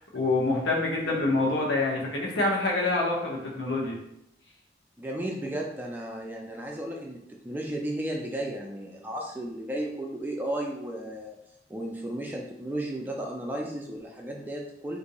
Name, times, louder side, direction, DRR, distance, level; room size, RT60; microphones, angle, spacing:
voice 1, 0.0-4.0, left 2 dB, 80° left, -3 dB, 1.0 m, -26 dB
voice 2, 5.0-11.4 11.7-15.0, right 1 dB, 10° right, 0 dB, 0.4 m, -34 dB
2.7 x 2.6 x 4.1 m, 0.79 s
head